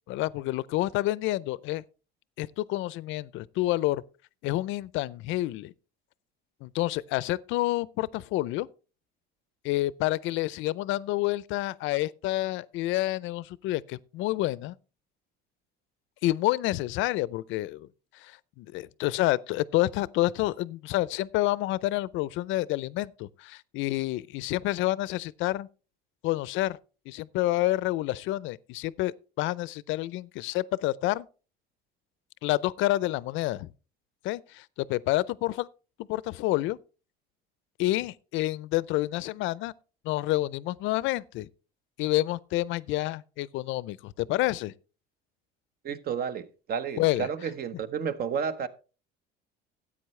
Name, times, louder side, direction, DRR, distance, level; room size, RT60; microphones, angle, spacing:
voice 1, 0.1-1.8 2.4-4.0 4.4-5.7 6.6-8.7 9.6-14.7 16.2-17.9 18.1-25.7 26.2-26.8 27.1-31.3 32.4-33.7 34.2-35.7 36.1-36.8 37.8-39.7 40.0-41.5 42.0-44.7 47.0-47.3, left 17 dB, 65° left, 0.5 m, -28 dB
voice 2, 45.8-48.7, right 7 dB, 45° right, 1.0 m, -31 dB
13.5 x 8.7 x 3.2 m
cardioid pair, 125°, 21 cm